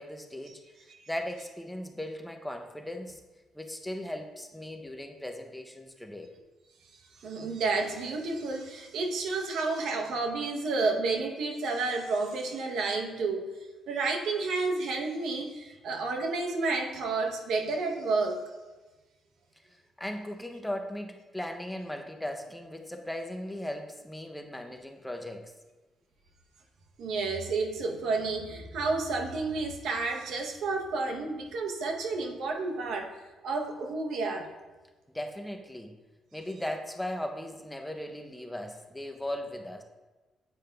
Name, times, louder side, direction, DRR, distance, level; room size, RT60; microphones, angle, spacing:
voice 1, 0.0-3.2 3.5-6.3 19.6-25.5 35.1-36.0 36.3-39.8, left 1 dB, 5° left, 5 dB, 0.5 m, -38 dB
voice 2, 7.2-13.5 13.9-18.4 27.0-33.1 33.4-34.5, right 3 dB, 75° right, 3 dB, 0.7 m, -30 dB
8.4 x 5.0 x 2.2 m, 1.2 s
cardioid pair, 90°, 0 cm